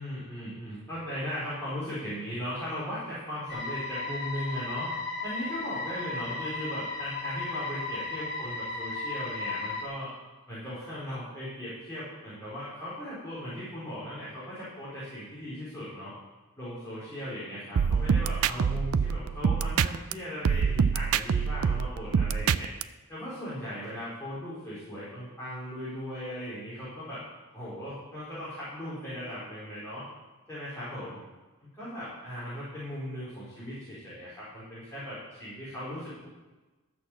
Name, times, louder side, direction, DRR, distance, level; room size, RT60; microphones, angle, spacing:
voice 1, 0.0-4.9 5.2-10.1 10.5-16.1 16.6-22.7 23.1-27.2 27.5-30.0 30.5-31.2 31.6-36.3, equal, 10° left, -11 dB, 4.5 m, -38 dB
sound 1, 3.5-9.9, left 3 dB, 50° left, 3.6 m, -35 dB
sound 2, 17.8-20.1 20.4-22.8, right 6 dB, 80° right, 0.4 m, -25 dB
13.5 x 6.4 x 7.5 m, 1.2 s
head